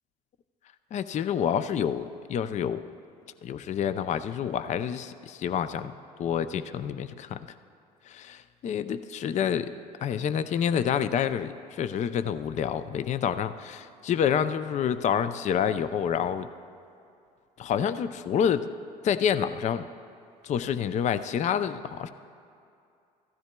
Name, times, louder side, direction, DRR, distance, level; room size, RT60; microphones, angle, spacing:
voice 1, 0.9-2.8 3.4-5.9 6.2-7.4 8.1-9.7 10.0-16.5 17.6-18.7 19.0-19.9 20.4-22.1, left 8 dB, 35° left, 12 dB, 0.4 m, -28 dB
15.5 x 13.0 x 2.2 m, 2.5 s
hypercardioid pair, 65°, 20 cm